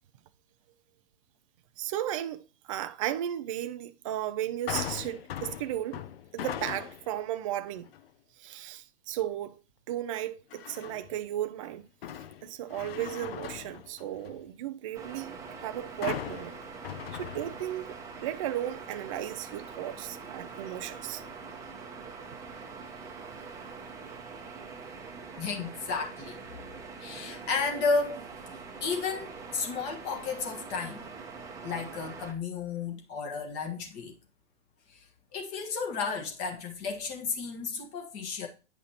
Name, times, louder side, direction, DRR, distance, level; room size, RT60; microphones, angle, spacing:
voice 1, 1.8-6.0 6.3-7.9 8.4-9.6 9.9-11.8 12.4-16.5 17.1-21.2, right 12 dB, 30° right, 0.4 m, -35 dB
sound 1, 4.7-7.2 7.7-8.1 10.5-11.2 11.6-14.5 16.0-18.0 18.3-18.4, left 10 dB, 60° left, 0.6 m, -39 dB
sound 2, 14.9-32.3, right 5 dB, 10° right, 0.9 m, -44 dB
voice 2, 25.4-26.4 27.0-28.2 28.8-31.1 31.6-34.1 34.9-35.0 35.3-38.5, left 4 dB, 30° left, 1.5 m, -33 dB
9.0 x 5.7 x 2.9 m
hypercardioid pair, 140°, 34 cm